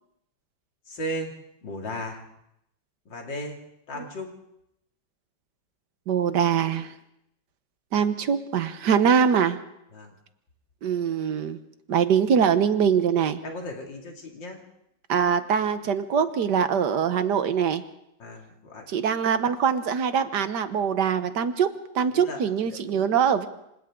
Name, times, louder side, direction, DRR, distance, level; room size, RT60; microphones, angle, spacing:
voice 1, 0.9-1.3 1.6-2.2 3.1-3.6 3.9-4.3 9.9-10.1 13.4-14.6 18.2-18.8 22.1-22.4 22.7-22.8, equal, 90° left, 1 dB, 3.3 m, -35 dB
voice 2, 6.1-6.9 7.9-9.6 10.8-11.6 11.9-13.4 15.1-17.8 18.9-21.7 21.9-23.5, right 7 dB, 70° right, 10 dB, 1.6 m, -23 dB
27.0 x 26.0 x 3.7 m, 0.79 s
omnidirectional pair, 1.9 m